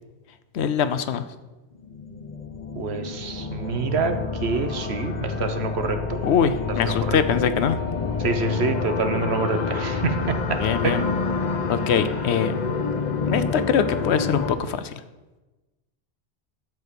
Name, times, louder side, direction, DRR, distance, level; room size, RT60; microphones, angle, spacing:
voice 1, 0.5-1.2 6.2-7.8 10.6-11.0 11.7-12.7 13.3-14.9, left 7 dB, 85° left, 12 dB, 1.0 m, -23 dB
sound 1, 1.7-14.5, left 5 dB, 45° left, 1.0 m, -28 dB
voice 2, 2.7-6.2 6.8-7.2 8.2-11.0, right 4 dB, 75° right, 7 dB, 1.3 m, -27 dB
12.0 x 5.0 x 6.8 m, 1.1 s
omnidirectional pair, 1.1 m